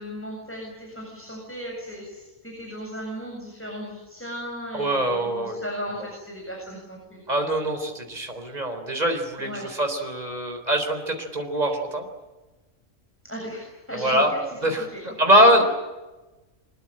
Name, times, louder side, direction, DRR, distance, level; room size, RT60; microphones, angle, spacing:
voice 1, 0.0-7.2 9.4-9.7 13.2-14.2 14.9-15.0, equal, 10° left, -1 dB, 7.5 m, -36 dB
voice 2, 4.7-5.6 7.3-12.1 13.9-14.3 14.6-14.9 15.2-15.6, equal, 30° right, 5 dB, 4.0 m, -23 dB
24.5 x 22.5 x 8.9 m, 1.1 s
omnidirectional pair, 1.4 m